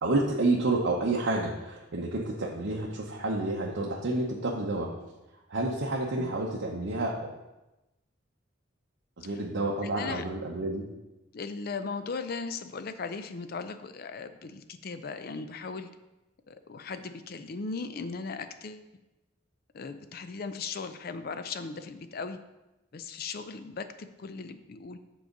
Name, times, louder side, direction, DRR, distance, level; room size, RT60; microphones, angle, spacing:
voice 1, 0.0-4.9 5.5-7.3 9.2-10.8, right 2 dB, 70° right, -3 dB, 0.8 m, -29 dB
voice 2, 11.3-15.9 16.5-18.8 19.7-22.4 22.9-25.0, left 4 dB, 50° left, 10 dB, 0.4 m, -38 dB
7.5 x 3.9 x 5.2 m, 1.0 s
head